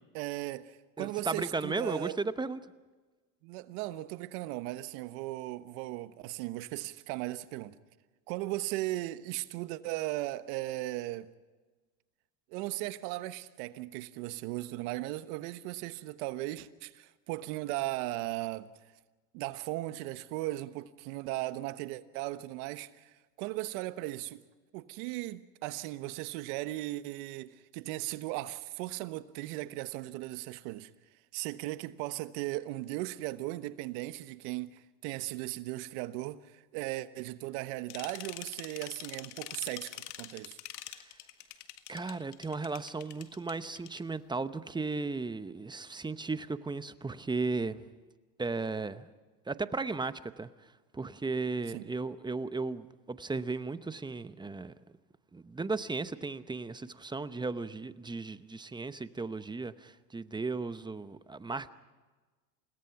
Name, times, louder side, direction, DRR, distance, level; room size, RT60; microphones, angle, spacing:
voice 1, 0.1-2.2 3.4-7.7 8.3-11.3 12.5-18.7 19.3-24.4 24.7-30.9 31.3-40.6 51.7-51.9, right 17 dB, 65° right, 1.3 m, -37 dB
voice 2, 1.0-2.6 40.9-41.0 41.9-47.8 48.4-49.1 49.5-50.5 50.9-54.7 55.3-61.7, right 3 dB, 10° right, 0.8 m, -35 dB
sound 1, 37.9-44.0, left 14 dB, 80° left, 1.9 m, -44 dB
29.5 x 18.0 x 5.9 m
supercardioid pair, 110°, 48 cm